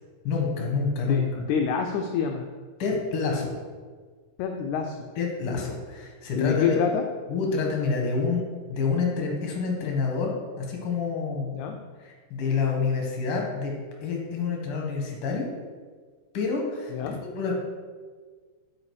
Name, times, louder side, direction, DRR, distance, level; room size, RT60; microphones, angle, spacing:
voice 1, 0.2-1.2 2.8-3.5 5.2-6.8 7.3-8.4 8.7-11.5 12.0-13.7 14.0-15.5 16.3-16.9 17.2-17.5, left 4 dB, 55° left, 0 dB, 1.9 m, -27 dB
voice 2, 1.1-2.5 4.4-5.1 6.4-7.0 11.5-11.8 16.9-17.2, left 6 dB, 80° left, 4 dB, 1.7 m, -27 dB
8.8 x 4.9 x 4.7 m, 1.5 s
omnidirectional pair, 3.8 m